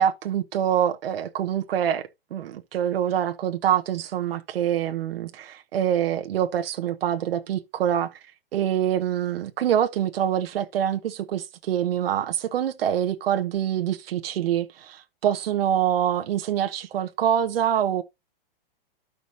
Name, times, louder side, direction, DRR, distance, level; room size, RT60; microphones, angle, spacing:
voice 1, 0.0-8.1 8.5-18.0, right 10 dB, 75° right, 1.0 m, -25 dB
14.0 x 5.0 x 2.6 m
supercardioid pair, 175°, 29 cm